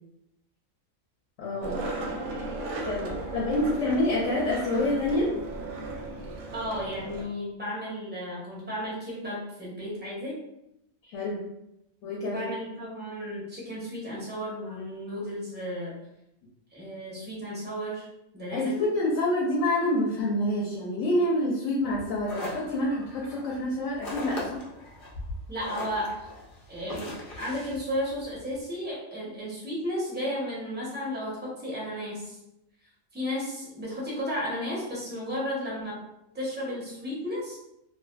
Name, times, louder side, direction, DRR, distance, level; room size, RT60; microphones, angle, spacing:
voice 1, 1.4-1.8 2.8-5.3 11.0-11.4 12.0-12.5 18.5-24.6, left 1 dB, 75° left, -4 dB, 0.9 m, -27 dB
Skateboard, 1.6-7.2, right 2 dB, 70° right, 0.8 m, -35 dB
voice 2, 6.5-10.4 12.2-15.9 16.7-18.1 18.3-18.8 25.5-26.2 26.7-32.4 33.1-36.0 36.3-37.6, equal, 10° right, -6 dB, 0.6 m, -33 dB
sound 1, 21.8-28.6, left 1 dB, 60° left, 0.6 m, -40 dB
2.5 x 2.4 x 2.2 m, 0.84 s
omnidirectional pair, 1.4 m